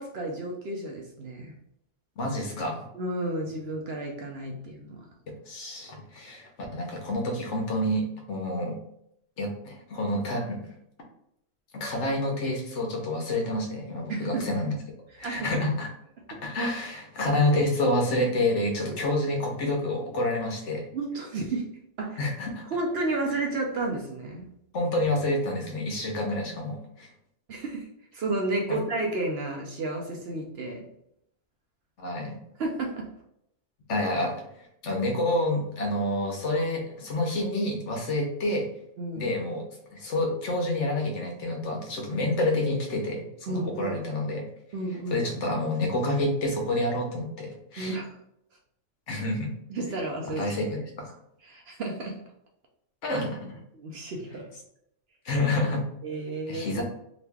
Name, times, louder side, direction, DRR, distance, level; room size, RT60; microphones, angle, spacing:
voice 1, 0.0-1.5 2.9-5.0 14.1-14.4 15.2-15.5 16.3-16.4 18.9-19.0 20.9-21.7 22.0-22.2 22.7-24.5 27.5-27.9 28.1-30.8 32.6-33.1 39.0-39.3 43.5-44.0 44.7-45.3 47.8-48.1 49.7-50.5 51.4-52.2 53.7-54.5 56.0-56.8, right 2 dB, 60° right, 0 dB, 0.7 m, -32 dB
voice 2, 2.2-2.9 5.5-8.8 9.4-10.8 11.7-14.8 15.2-15.9 16.4-20.8 22.2-22.6 24.7-27.1 28.7-28.8 32.0-32.4 33.9-34.3 34.8-38.7 39.1-39.7 39.9-44.5 45.1-48.0 49.1-49.5 50.4-51.1 53.0-53.6 55.2-55.8 56.5-56.8, left 1 dB, 70° left, 1 dB, 1.0 m, -28 dB
2.9 x 2.5 x 3.4 m, 0.76 s
omnidirectional pair, 1.3 m